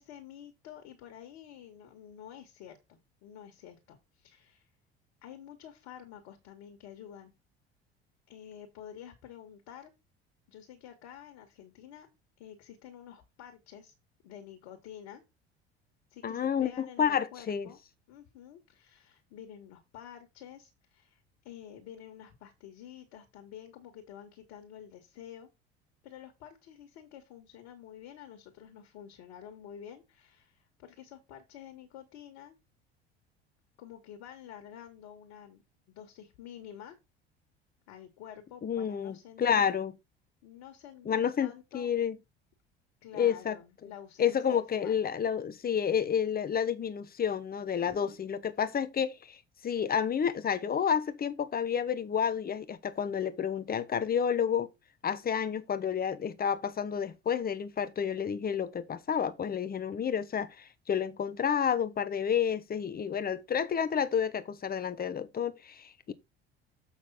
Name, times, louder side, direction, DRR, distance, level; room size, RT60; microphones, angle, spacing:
voice 1, 0.0-4.7 5.2-7.3 8.3-9.9 10.5-12.1 12.4-13.9 14.2-15.2 16.1-17.8 18.1-25.5 26.0-32.6 33.8-35.6 35.9-37.0 37.9-39.8 40.4-41.9 43.0-45.0 47.8-48.2, left 10 dB, 60° left, 2.0 m, -49 dB
voice 2, 16.2-17.7 38.6-39.9 41.0-42.2 43.2-43.6 44.2-49.4 49.6-54.7 55.0-66.1, left 8 dB, 30° left, 1.1 m, -30 dB
7.4 x 5.9 x 4.1 m
figure-of-eight pair, 65°, 32 cm